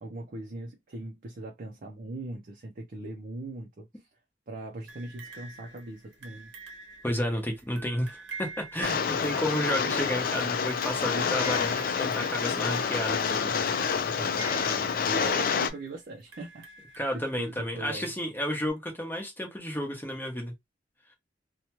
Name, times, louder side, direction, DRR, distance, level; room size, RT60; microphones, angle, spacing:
voice 1, 0.0-4.1 4.5-6.5 14.1-16.7 17.1-18.1, right 2 dB, 50° right, 0.5 m, -40 dB
sound 1, 4.9-17.7 18.7-18.8, right 4 dB, 75° right, 0.8 m, -47 dB
voice 2, 7.0-13.5 17.0-20.5, equal, 10° left, 0.8 m, -31 dB
Rain, 8.8-15.7, left 6 dB, 50° left, 0.4 m, -28 dB
2.7 x 2.2 x 2.9 m
head